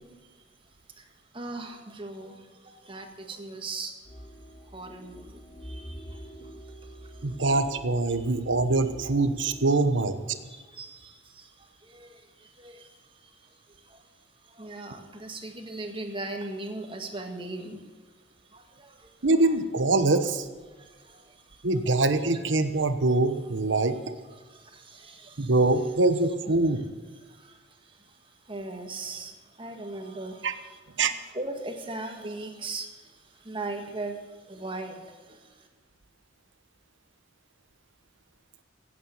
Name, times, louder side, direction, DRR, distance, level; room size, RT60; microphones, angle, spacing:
voice 1, 1.0-4.3 4.6-7.5 10.4-17.8 18.5-19.3 20.7-21.8 24.3-25.5 27.2-35.7, right 2 dB, 25° right, 4 dB, 1.7 m, -40 dB
sound 1, 4.0-9.7, equal, 30° left, 2.0 m, -45 dB
voice 2, 7.2-10.4 19.2-20.5 21.6-24.1 25.4-26.8 30.4-30.5 31.0-31.1, right 2 dB, 75° right, 10 dB, 1.1 m, -24 dB
16.0 x 8.7 x 7.1 m, 1.4 s
head